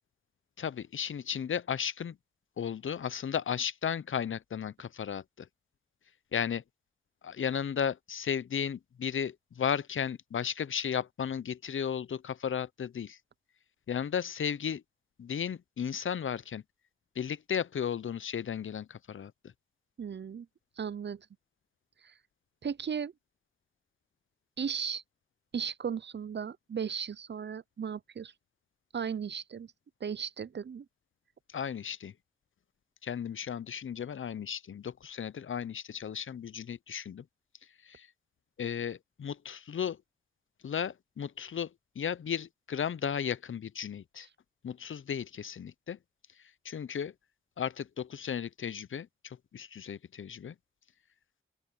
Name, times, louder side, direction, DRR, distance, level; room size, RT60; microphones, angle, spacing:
voice 1, 0.6-2.2 2.6-5.5 6.3-6.6 7.2-13.2 13.9-14.8 15.2-16.6 17.2-19.5 31.5-32.1 33.0-37.3 37.8-38.1 38.6-40.0 40.6-44.3 44.6-46.0 46.3-47.1 47.6-50.6, left 8 dB, 70° left, 0.5 m, -35 dB
voice 2, 20.0-20.5 20.8-21.3 22.0-22.1 22.6-23.1 24.6-25.0 25.5-28.3 28.9-29.7 30.0-30.9, right 7 dB, 60° right, 0.5 m, -36 dB
open air
cardioid pair, 45°, 21 cm